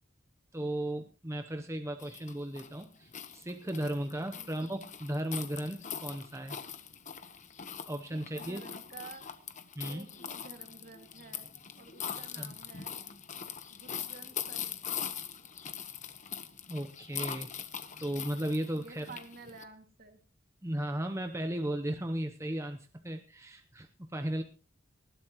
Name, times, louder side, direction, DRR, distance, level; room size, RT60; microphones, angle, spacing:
voice 1, 0.5-6.6 7.9-8.6 9.8-10.1 12.4-12.5 16.7-17.5 18.0-19.1 20.6-24.4, right 1 dB, 15° right, 6 dB, 0.8 m, -35 dB
sound 1, 2.0-19.6, left 8 dB, 40° left, 1.2 m, -42 dB
voice 2, 8.1-9.3 9.9-11.5 11.8-12.9 13.7-15.1 18.8-20.2, right 3 dB, 50° right, 6 dB, 2.3 m, -51 dB
19.5 x 14.5 x 3.1 m, 0.34 s
head